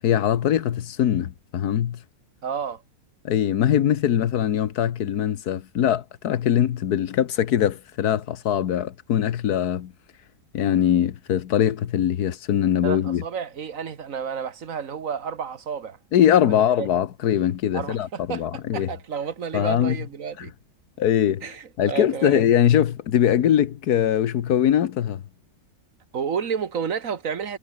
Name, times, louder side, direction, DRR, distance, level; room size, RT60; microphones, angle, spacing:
voice 1, 0.0-2.0 3.2-9.9 10.5-13.2 16.1-18.9 19.5-20.0 21.0-21.4 21.8-25.2, left 10 dB, 85° left, 1.5 m, -22 dB
voice 2, 2.4-2.8 12.8-16.0 16.5-16.9 17.7-18.5 18.7-20.5 21.4-22.4 26.1-27.6, right 7 dB, 60° right, 1.8 m, -31 dB
omnidirectional pair, 1.6 m